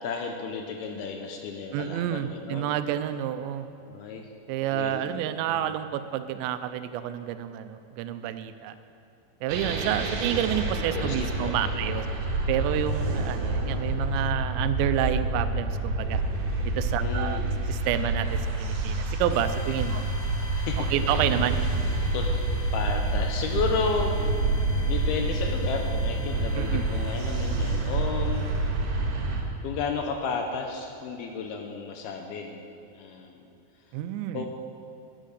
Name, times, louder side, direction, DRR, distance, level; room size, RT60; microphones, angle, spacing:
voice 1, 0.0-2.7 3.9-4.3 4.7-5.0 5.4-5.7 10.7-11.6 17.0-17.6 19.9-20.1 20.5-20.9 22.1-22.4 22.7-24.2 24.9-28.5 29.6-32.7 32.9-33.4 34.3-34.5, left 5 dB, 75° left, 3 dB, 2.4 m, -33 dB
voice 2, 1.7-3.7 4.5-8.8 9.4-12.1 12.5-16.2 16.8-17.4 17.7-20.0 20.8-21.6 26.6-26.8 33.9-34.5, right 11 dB, 85° right, 11 dB, 2.9 m, -29 dB
sound 1, 9.5-29.4, right 2 dB, 60° right, 2.6 m, -28 dB
sound 2, 19.3-28.7, left 3 dB, 50° left, 2.6 m, -46 dB
11.5 x 10.5 x 6.5 m, 2.8 s
omnidirectional pair, 5.1 m